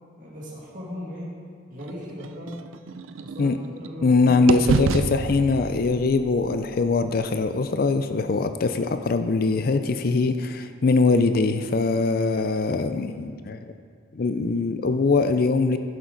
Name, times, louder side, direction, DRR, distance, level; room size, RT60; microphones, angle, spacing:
voice 1, 0.2-1.3 1.7-2.6 3.2-5.0, equal, 40° right, -7 dB, 2.1 m, -38 dB
sound 1, 1.8-4.1 4.5-8.5, right 4 dB, 80° right, 0.4 m, -30 dB
voice 2, 4.0-13.7 14.1-15.8, left 3 dB, 45° left, 9 dB, 0.4 m, -22 dB
11.0 x 10.5 x 3.9 m, 2.2 s
head